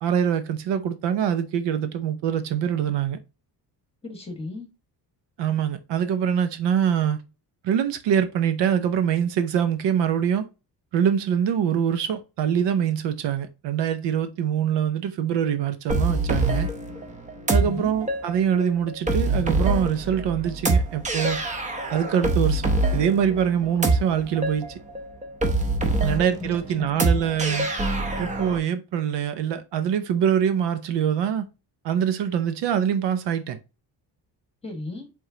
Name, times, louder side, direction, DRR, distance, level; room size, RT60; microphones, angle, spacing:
voice 1, 0.0-3.2 5.4-7.2 7.6-10.5 10.9-16.7 17.5-21.4 21.9-24.7 26.0-27.7 28.2-31.5 31.8-33.6, right 8 dB, 80° right, 0.8 m, -24 dB
voice 2, 4.0-4.7 17.5-18.0 25.9-26.9 34.6-35.1, left 2 dB, 15° left, 1.4 m, -36 dB
sound 1, 15.9-28.6, right 2 dB, 20° right, 0.7 m, -25 dB
4.8 x 3.7 x 2.7 m
cardioid pair, 150°, 41 cm